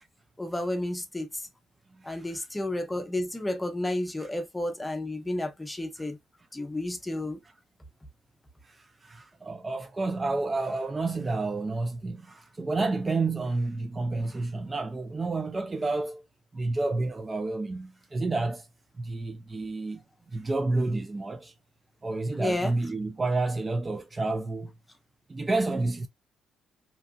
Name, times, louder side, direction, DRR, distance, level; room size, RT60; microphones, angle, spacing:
voice 1, 0.4-1.3 2.0-6.2 6.5-7.4 22.4-22.7, left 1 dB, 10° left, 0.6 m, -31 dB
voice 2, 2.0-2.5 4.2-4.3 6.0-6.1 8.6-16.2 16.5-18.7 19.0-20.0 20.3-21.5 22.0-24.7 25.3-26.1, right 3 dB, 25° right, 0.3 m, -30 dB
2.9 x 2.4 x 2.3 m
cardioid pair, 90°, 0 cm